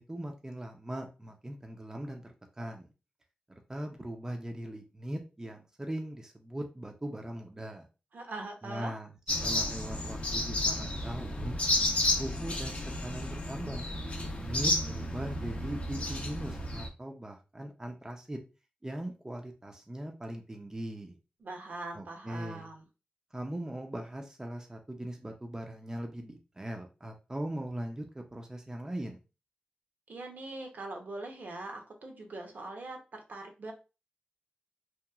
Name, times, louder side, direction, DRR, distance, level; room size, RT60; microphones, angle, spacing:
voice 1, 0.0-2.9 3.7-7.9 8.6-9.1 9.4-11.6 12.2-13.9 14.2-18.4 18.8-21.1 21.9-22.7 23.3-29.2, right 1 dB, 20° right, 3 dB, 0.5 m, -40 dB
voice 2, 8.1-9.0 21.4-22.8 30.1-33.7, right 2 dB, 65° right, 3 dB, 0.7 m, -42 dB
sound 1, 9.3-16.9, left 1 dB, 45° left, 0.6 m, -32 dB
2.9 x 2.3 x 2.3 m, 0.31 s
wide cardioid pair, 80°, 3 cm